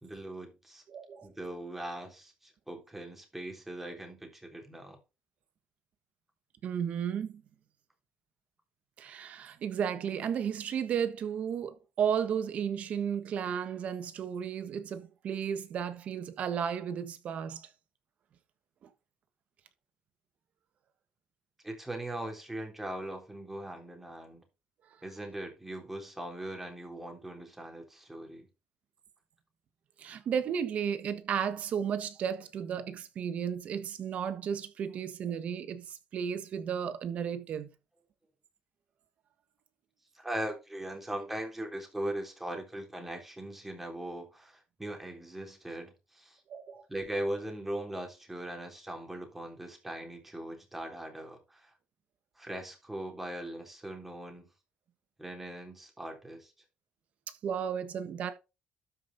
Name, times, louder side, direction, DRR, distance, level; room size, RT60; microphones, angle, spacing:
voice 1, 0.0-0.8 1.2-5.0 21.6-24.4 25.0-28.5 40.1-46.4 46.9-51.7 52.4-54.5 55.2-56.5, right 1 dB, 10° right, 3.4 m, -40 dB
voice 2, 0.9-1.3 6.6-7.4 9.0-17.7 30.0-37.7 46.5-46.8 57.4-58.3, right 8 dB, 55° right, 1.4 m, -33 dB
12.5 x 5.4 x 4.0 m
cardioid pair, 120°, 3 cm